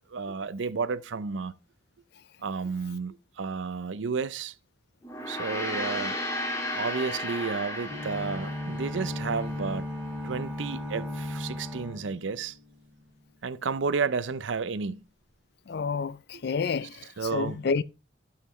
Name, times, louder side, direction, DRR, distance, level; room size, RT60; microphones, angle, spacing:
voice 1, 0.0-1.5 2.4-4.5 5.3-6.1 6.7-9.8 10.2-12.6 13.4-15.0 17.2-17.6, right 5 dB, 75° right, 0.5 m, -32 dB
Gong, 5.0-9.6, left 1 dB, 15° left, 1.8 m, -34 dB
sound 1, 7.8-12.8, left 1 dB, 5° right, 3.7 m, -36 dB
voice 2, 15.7-17.8, left 5 dB, 60° left, 0.4 m, -29 dB
12.5 x 5.7 x 3.1 m
head